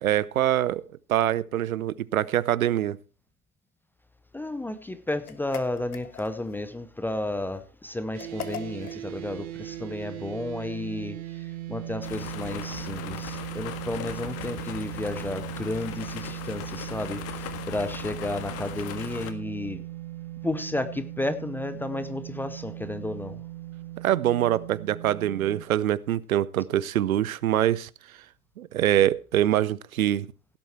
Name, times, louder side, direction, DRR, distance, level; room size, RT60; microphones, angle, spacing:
voice 1, 0.0-0.8 1.1-3.0 24.0-27.9 28.6-30.3, right 12 dB, 70° right, 0.7 m, -24 dB
voice 2, 4.3-19.8 20.4-23.4, left 2 dB, 5° left, 0.6 m, -32 dB
sound 1, 5.2-6.6 8.2-9.0, left 8 dB, 75° left, 1.5 m, -40 dB
sound 2, 8.1-25.6, right 15 dB, 50° right, 2.1 m, -38 dB
sound 3, 12.0-19.3, left 10 dB, 35° left, 1.6 m, -39 dB
17.0 x 7.9 x 4.4 m
figure-of-eight pair, 100°, 44 cm